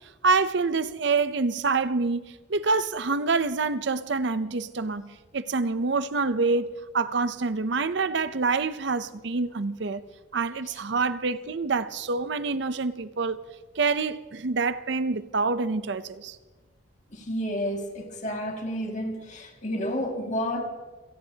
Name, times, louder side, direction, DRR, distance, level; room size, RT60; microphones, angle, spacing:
voice 1, 0.2-10.0 10.3-13.4 13.8-16.4, right 4 dB, 55° right, 0.6 m, -26 dB
voice 2, 17.1-20.7, equal, 35° left, 2.1 m, -30 dB
28.0 x 18.0 x 2.8 m
head